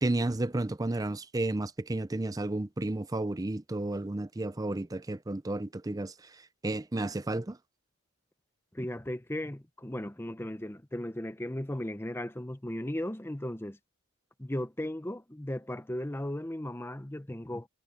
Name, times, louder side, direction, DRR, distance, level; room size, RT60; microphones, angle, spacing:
voice 1, 0.0-6.1 6.6-7.6, right 2 dB, 15° right, 0.5 m, -32 dB
voice 2, 8.7-13.8 14.4-17.7, left 1 dB, 10° left, 0.8 m, -36 dB
head